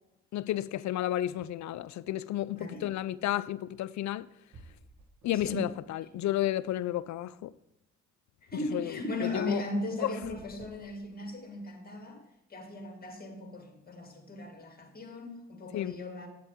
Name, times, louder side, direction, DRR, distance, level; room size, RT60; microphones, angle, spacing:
voice 1, 0.3-4.3 5.2-7.5 8.7-9.6 10.0-10.1 15.7-15.9, left 13 dB, 75° left, 0.4 m, -32 dB
voice 2, 2.5-2.9 5.3-5.7 8.4-12.2 12.5-16.3, left 1 dB, 30° left, 2.1 m, -37 dB
sound 1, 4.1-4.2 4.5-5.8 6.2-7.3 10.0-11.6, right 2 dB, 65° right, 1.4 m, -55 dB
8.2 x 8.2 x 3.6 m
supercardioid pair, 55°, 29 cm